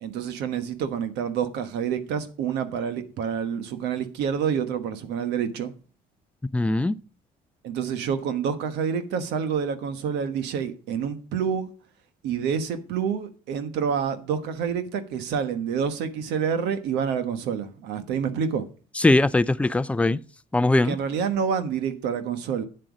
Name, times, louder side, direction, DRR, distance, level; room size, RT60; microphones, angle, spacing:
voice 1, 0.0-5.7 7.6-11.7 12.2-18.6 20.9-22.6, right 7 dB, 85° right, 1.2 m, -28 dB
voice 2, 6.5-7.0 19.0-20.2 20.5-21.0, left 2 dB, 5° left, 0.4 m, -20 dB
9.2 x 7.8 x 5.0 m
cardioid pair, 110°, 17 cm